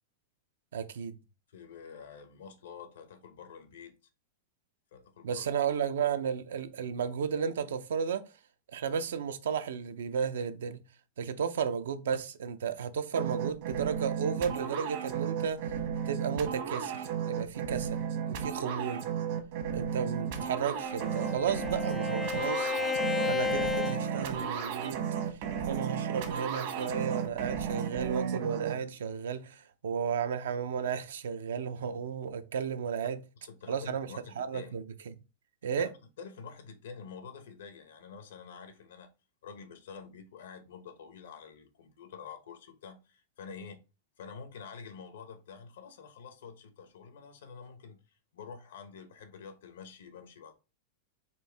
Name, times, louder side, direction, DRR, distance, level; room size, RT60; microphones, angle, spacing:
voice 1, 0.7-1.1 5.2-8.2 8.7-10.8 11.2-15.7 16.1-19.1 19.7-22.7 23.2-25.0 25.7-33.2 33.7-34.1 34.4-35.2 35.6-35.9, right 7 dB, 90° right, 0.5 m, -33 dB
voice 2, 1.5-3.9 4.9-5.7 33.4-34.8 35.8-35.9 36.2-39.1 39.4-43.8 44.2-48.0 48.3-50.5, left 6 dB, 90° left, 1.0 m, -48 dB
sound 1, 13.1-28.7, right 8 dB, 60° right, 1.0 m, -34 dB
Bowed string instrument, 20.4-24.9, left 5 dB, 5° left, 0.4 m, -34 dB
4.4 x 2.7 x 3.3 m
supercardioid pair, 145°, 0 cm